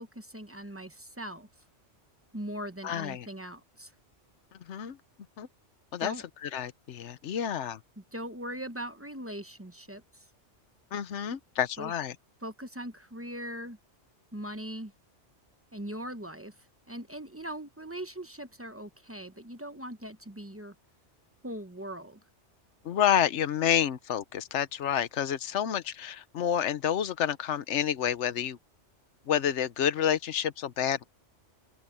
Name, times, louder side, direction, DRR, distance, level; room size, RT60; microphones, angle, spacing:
voice 1, 0.0-1.5 2.3-3.9 6.0-6.2 8.1-10.0 11.8-11.9 12.4-13.8 14.3-14.9 15.7-16.5 16.9-20.7 21.4-22.2, equal, 15° right, 0.8 m, -40 dB
voice 2, 2.8-3.3 4.5-5.0 5.4-5.5 5.9-6.1 6.4-7.8 10.9-12.2 22.8-28.6 29.3-31.0, left 9 dB, 75° left, 1.2 m, -29 dB
open air
omnidirectional pair, 1.2 m